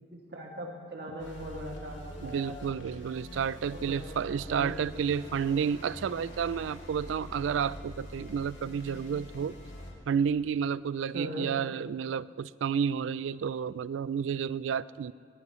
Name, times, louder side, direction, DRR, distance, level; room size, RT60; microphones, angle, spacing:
voice 1, 0.1-2.5 3.7-4.0 4.3-4.7 11.1-11.5, equal, 60° right, -1 dB, 2.4 m, -40 dB
sound 1, 1.2-9.9, left 1 dB, 75° left, 2.5 m, -45 dB
voice 2, 2.2-9.5 10.1-15.1, right 7 dB, 85° right, 19 dB, 0.3 m, -31 dB
20.0 x 20.0 x 3.2 m, 2.2 s
head